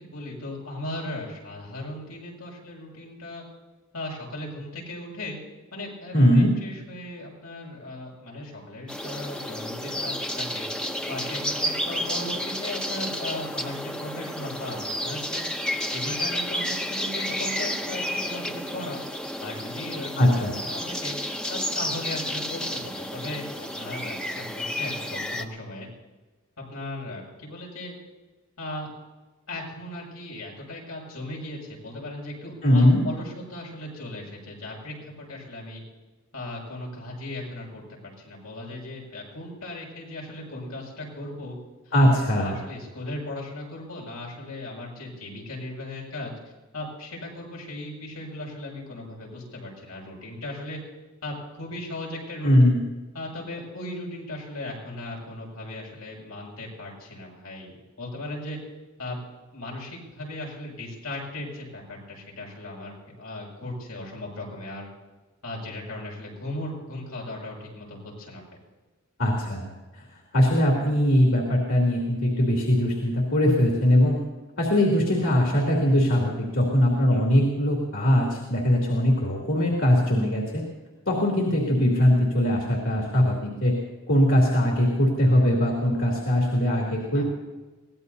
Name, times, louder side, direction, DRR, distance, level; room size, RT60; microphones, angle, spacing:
voice 1, 0.0-3.4 3.9-5.4 5.7-10.7 11.1-15.5 15.8-19.0 19.4-21.2 21.5-25.9 26.7-27.9 28.6-28.9 29.5-35.8 36.3-41.6 41.9-46.3 46.7-50.8 51.2-52.7 53.1-58.6 59.0-59.2 59.5-64.9 65.4-68.4 77.1-77.3 87.0-87.2, left 1 dB, 90° left, -2 dB, 6.9 m, -37 dB
voice 2, 6.1-6.6 20.2-20.5 32.6-33.1 41.9-42.6 52.4-52.8 69.2-70.0 70.3-74.2 74.6-80.6 81.1-83.8 84.1-87.2, equal, 65° left, -2 dB, 3.2 m, -21 dB
sound 1, 8.9-25.4, equal, 5° left, 0.8 m, -31 dB
23.5 x 18.0 x 2.8 m, 1.2 s
head